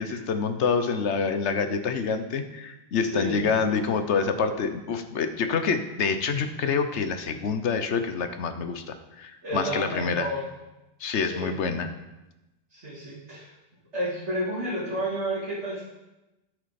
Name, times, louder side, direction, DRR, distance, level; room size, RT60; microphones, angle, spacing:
voice 1, 0.0-10.3 11.0-11.9, left 5 dB, 75° left, 9 dB, 1.1 m, -27 dB
voice 2, 3.0-3.8 9.4-10.4 11.2-11.5 12.7-13.5 13.9-15.8, equal, 75° right, -10 dB, 3.0 m, -31 dB
10.5 x 8.0 x 4.2 m, 0.99 s
omnidirectional pair, 1.2 m